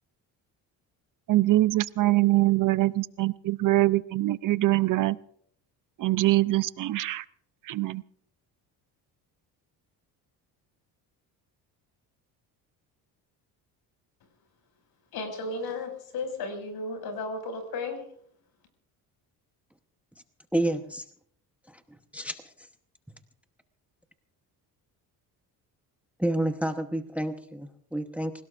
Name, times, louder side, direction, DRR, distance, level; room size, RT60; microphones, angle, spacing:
voice 1, 1.3-5.2 6.0-7.2 7.7-8.0, right 17 dB, 55° right, 16 dB, 0.6 m, -23 dB
voice 2, 15.1-18.0, left 3 dB, 70° left, 5 dB, 6.1 m, -34 dB
voice 3, 20.5-21.0 21.7-21.8 22.1-22.5 26.2-28.4, right 1 dB, 5° right, 7 dB, 1.0 m, -29 dB
27.5 x 17.0 x 2.5 m, 0.65 s
cardioid pair, 110°, 39 cm